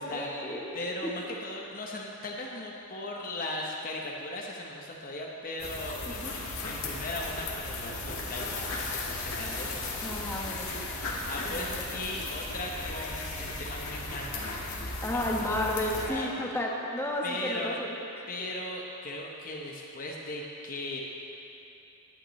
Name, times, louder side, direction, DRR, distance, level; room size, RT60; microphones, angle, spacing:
voice 1, 0.0-0.7 1.0-1.1 6.0-6.4 9.9-10.9 11.4-11.8 15.0-17.9, left 1 dB, 10° left, -2 dB, 1.2 m, -33 dB
voice 2, 0.7-10.2 10.5-10.6 11.0-15.6 16.0-16.4 17.2-17.8 18.3-21.0, left 1 dB, 40° left, -1 dB, 0.9 m, -38 dB
sound 1, 5.6-16.1, left 2 dB, 65° left, 1.7 m, -36 dB
18.0 x 9.9 x 3.2 m, 2.8 s
head